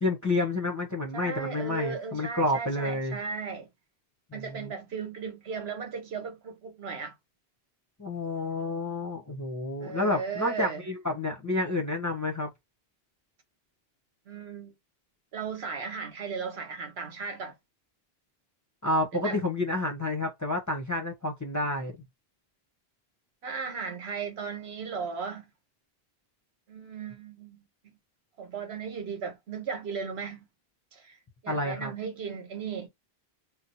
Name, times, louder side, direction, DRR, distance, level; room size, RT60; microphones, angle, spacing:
voice 1, 0.0-3.2 4.3-4.7 8.0-12.5 18.8-21.9 31.5-31.9, left 2 dB, 20° left, 0.6 m, -29 dB
voice 2, 1.1-3.7 4.3-7.1 9.8-10.8 14.3-14.7 15.3-17.5 19.1-19.4 23.4-25.4 26.7-27.6 28.4-30.5 30.9-31.2 31.4-32.9, right 5 dB, 80° right, 1.2 m, -36 dB
2.8 x 2.0 x 4.0 m
omnidirectional pair, 1.0 m